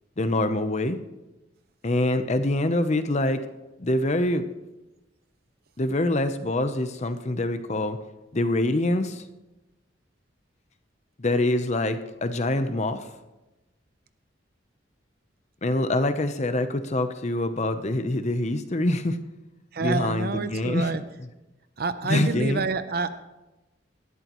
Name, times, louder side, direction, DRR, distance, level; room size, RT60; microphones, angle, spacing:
voice 1, 0.2-1.0 1.8-3.4 3.8-4.5 5.8-8.0 8.3-9.2 11.2-13.0 15.6-19.2 19.8-20.9 22.1-22.6, left 1 dB, 35° left, 9 dB, 0.8 m, -25 dB
voice 2, 19.7-21.0 21.8-23.1, right 3 dB, 55° right, 12 dB, 0.7 m, -28 dB
18.5 x 13.0 x 3.1 m, 1.0 s
head